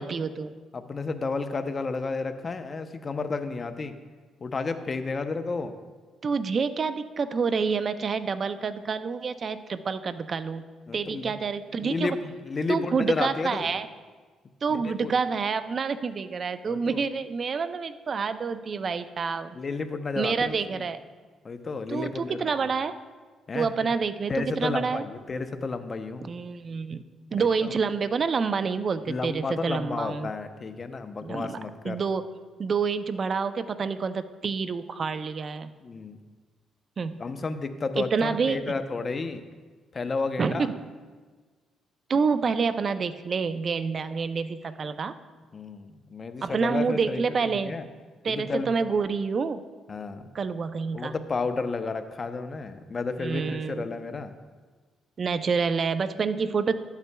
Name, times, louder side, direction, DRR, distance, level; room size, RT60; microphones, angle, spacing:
voice 1, 0.0-0.5 6.2-10.7 10.9-12.2 12.7-13.9 14.6-19.6 20.2-21.0 21.9-22.9 23.5-25.0 26.2-27.0 27.3-30.3 31.2-31.6 31.8-32.3 32.6-35.7 37.0-37.2 38.0-38.7 40.4-40.8 42.1-45.1 46.4-47.8 48.2-49.6 50.3-51.1 53.2-53.9 55.2-56.7, right 5 dB, 45° right, 12 dB, 0.5 m, -28 dB
voice 2, 0.7-4.0 4.4-5.7 10.9-11.3 11.8-13.7 14.8-15.1 16.7-17.0 19.5-20.8 21.4-22.5 23.5-23.7 24.3-26.3 27.4-27.7 29.1-32.0 35.8-36.2 37.2-39.4 39.9-40.7 45.5-47.8 48.3-48.7 49.9-50.3 50.9-54.3, left 4 dB, 35° left, 9 dB, 0.6 m, -32 dB
12.0 x 8.1 x 2.2 m, 1.4 s
cardioid pair, 90°, 0 cm